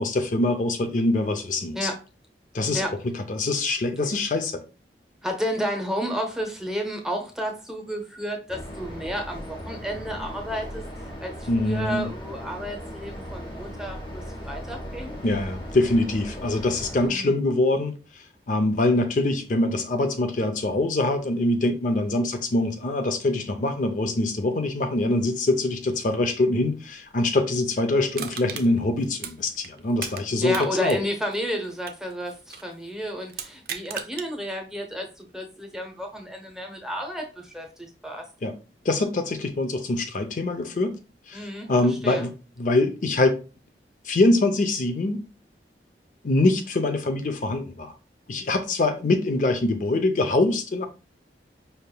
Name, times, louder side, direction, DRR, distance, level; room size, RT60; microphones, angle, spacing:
voice 1, 0.0-1.9 2.5-4.6 11.5-12.1 15.2-17.9 18.5-31.0 38.4-38.6 38.8-41.0 41.3-43.4 44.0-45.2 46.2-47.9 48.3-50.9, left 2 dB, 45° left, 0.5 m, -24 dB
voice 2, 5.2-10.8 11.2-15.1 17.0-17.4 30.4-38.2 41.3-42.3, equal, 5° right, 0.8 m, -31 dB
sound 1, 8.5-17.1, equal, 25° left, 1.0 m, -38 dB
Crushing, 28.1-30.2 30.5-32.7 33.3-34.3 34.8-34.9, right 8 dB, 55° right, 0.5 m, -36 dB
5.5 x 3.4 x 2.2 m
head